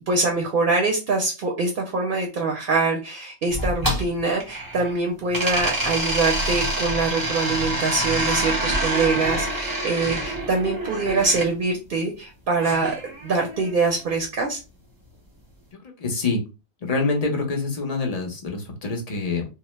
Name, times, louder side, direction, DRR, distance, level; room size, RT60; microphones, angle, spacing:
voice 1, 0.1-12.9 13.2-14.6, right 3 dB, 55° right, 2 dB, 0.7 m, -24 dB
sound 1, 3.5-4.9 5.3-11.5 12.6-13.7, right 1 dB, 20° right, 0.7 m, -26 dB
voice 2, 16.0-16.4 16.8-19.5, left 3 dB, 40° left, 3 dB, 0.7 m, -25 dB
2.8 x 2.1 x 3.1 m, 0.29 s
omnidirectional pair, 1.2 m